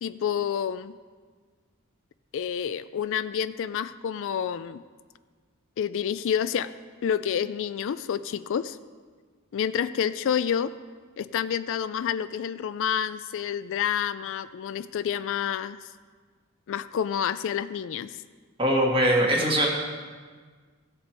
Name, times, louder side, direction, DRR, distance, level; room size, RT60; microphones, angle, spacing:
voice 1, 0.0-0.9 2.3-4.8 5.8-6.7 7.0-8.8 9.5-10.7 11.2-15.8 16.7-18.2, left 8 dB, 60° left, 13 dB, 0.3 m, -28 dB
voice 2, 18.6-19.7, right 1 dB, 25° right, -1 dB, 1.8 m, -21 dB
16.0 x 6.7 x 4.5 m, 1.5 s
head